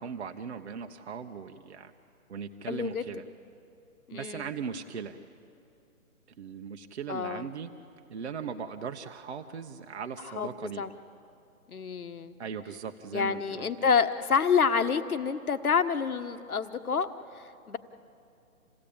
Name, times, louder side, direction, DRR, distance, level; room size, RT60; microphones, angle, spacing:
voice 1, 0.0-1.9 2.3-3.2 4.1-5.2 6.4-7.7 8.1-10.8 12.4-13.9, right 6 dB, 50° right, 6 dB, 1.0 m, -38 dB
voice 2, 2.7-3.1 4.1-4.5 7.1-7.5 10.3-10.5 10.8-10.9 11.7-12.3 13.1-17.8, left 6 dB, 80° left, 9 dB, 1.4 m, -28 dB
28.0 x 16.0 x 8.7 m, 2.6 s
hypercardioid pair, 160°, 43 cm